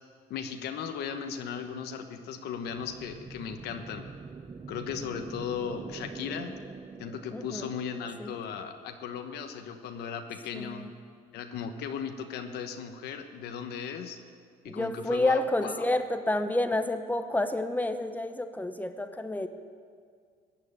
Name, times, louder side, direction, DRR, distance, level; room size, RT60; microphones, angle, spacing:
voice 1, 0.3-4.1 4.7-6.6 7.0-10.9 11.3-14.2 14.6-15.9, left 7 dB, 75° left, 6 dB, 1.2 m, -37 dB
sound 1, 2.7-9.2, right 4 dB, 20° right, 0.5 m, -45 dB
voice 2, 7.3-7.7 8.2-8.3 10.5-10.9 14.7-19.5, left 1 dB, 10° left, 9 dB, 0.9 m, -29 dB
15.0 x 9.3 x 8.9 m, 2.1 s
cardioid pair, 110°, 17 cm